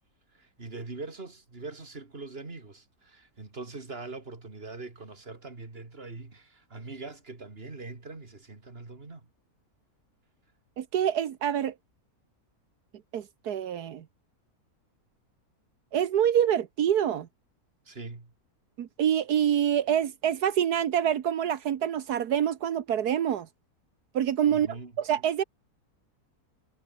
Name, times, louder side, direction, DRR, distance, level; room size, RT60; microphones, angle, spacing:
voice 1, 0.3-9.2 17.8-18.3 24.5-24.9, right 3 dB, 40° right, 3.1 m, -42 dB
voice 2, 10.8-11.7 13.1-14.0 15.9-17.3 18.8-23.5 24.1-25.4, right 9 dB, 80° right, 1.6 m, -26 dB
omnidirectional pair, 1.6 m